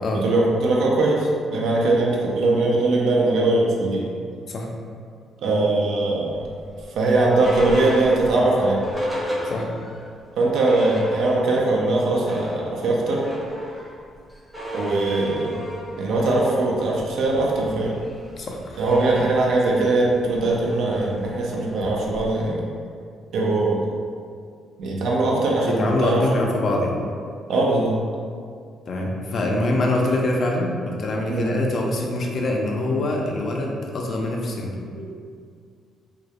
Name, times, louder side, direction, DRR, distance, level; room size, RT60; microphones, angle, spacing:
voice 1, 0.1-4.1 5.4-6.4 7.0-8.8 10.4-13.3 14.7-15.7 16.0-18.0 18.8-22.6 23.3-23.9 24.8-26.2 27.5-28.0 31.3-31.5 34.9-35.1, right 2 dB, 75° right, -3 dB, 0.4 m, -21 dB
sound 1, 6.4-10.0 10.4-10.5 10.6-11.7 12.0-22.5, equal, 10° right, 0.6 m, -34 dB
voice 2, 18.4-18.8 25.7-27.0 28.9-34.7, left 1 dB, 55° left, 0 dB, 0.4 m, -24 dB
2.3 x 2.0 x 2.8 m, 2.2 s
cardioid pair, 90°, 0 cm